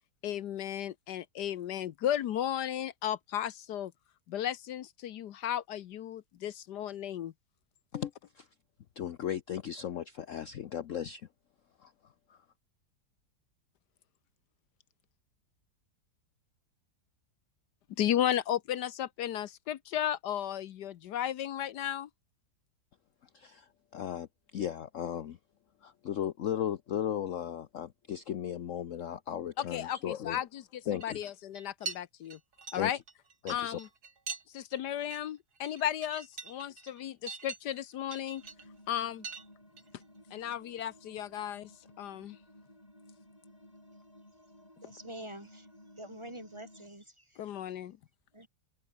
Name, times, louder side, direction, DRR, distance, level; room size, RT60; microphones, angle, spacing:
voice 1, 0.2-3.9 4.3-7.3 18.0-22.1 29.6-32.4 32.7-33.0 33.5-33.9 34.5-38.4 38.9-39.3 40.3-41.7 42.0-42.4 47.4-48.0, left 11 dB, 75° left, 1.4 m, -34 dB
voice 2, 7.9-8.5 9.0-11.3 11.8-11.9 12.3-12.4 23.3-24.3 24.5-25.4 25.8-30.4 30.9-31.2 32.8-32.9 33.4-33.8, left 10 dB, 55° left, 1.0 m, -36 dB
sound 1, 31.0-31.3 31.6-32.0 32.3-34.4 34.7-34.8 35.1-35.2 35.6-37.8 38.1-38.6 39.2-39.5 39.8-40.0, right 5 dB, 65° right, 3.1 m, -43 dB
sound 2, 38.4-46.9, left 1 dB, 20° left, 7.6 m, -57 dB
voice 3, 44.8-45.7 46.0-47.0 48.3-48.5, right 1 dB, 15° right, 2.3 m, -45 dB
omnidirectional pair, 1.8 m